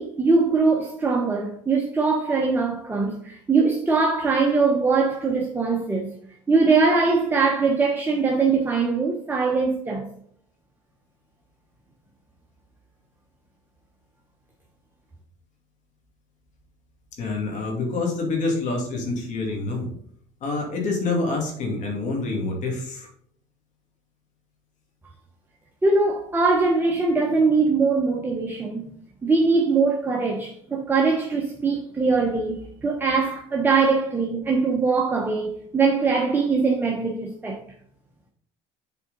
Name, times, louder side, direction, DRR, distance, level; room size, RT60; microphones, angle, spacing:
voice 1, 0.0-6.2 6.5-10.1 25.8-28.9 29.2-37.6, right 4 dB, 15° right, 1.0 m, -22 dB
voice 2, 17.2-19.9 20.4-23.1, left 3 dB, 55° left, 2.4 m, -27 dB
7.2 x 4.3 x 4.0 m
supercardioid pair, 105°, 15 cm